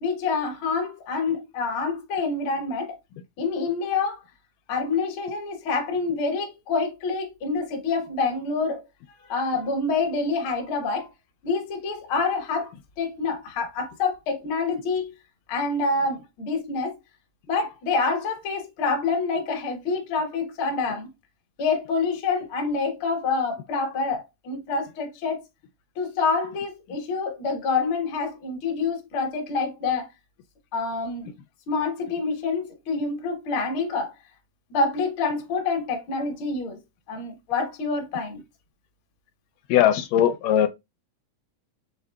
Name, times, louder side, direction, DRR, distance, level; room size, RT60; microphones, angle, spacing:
voice 1, 0.0-3.0 3.4-4.2 4.7-8.8 9.2-11.1 11.4-12.7 13.0-15.1 15.5-16.9 17.5-21.1 21.6-25.4 26.0-30.1 30.7-31.3 31.7-34.1 34.7-36.8 37.1-38.4, left 4 dB, 60° left, 1.4 m, -27 dB
voice 2, 39.7-40.7, left 10 dB, 85° left, 2.0 m, -19 dB
5.8 x 3.7 x 2.2 m
omnidirectional pair, 3.7 m